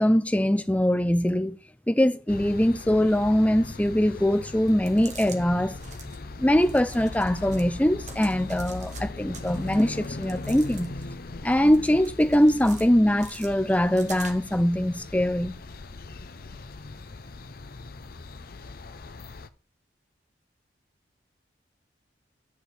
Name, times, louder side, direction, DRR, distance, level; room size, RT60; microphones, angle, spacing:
voice 1, 0.0-1.6 1.9-5.8 6.0-6.1 6.4-10.9 11.4-15.6, equal, 10° left, 0.5 m, -22 dB
sound 1, 2.3-19.5, left 3 dB, 50° left, 0.7 m, -40 dB
sound 2, 4.7-5.4 5.8-6.2 6.6-7.7 8.0-9.0 9.3-11.1 11.5-12.9 13.2-14.6, right 5 dB, 40° right, 1.6 m, -46 dB
10.5 x 4.4 x 7.9 m
head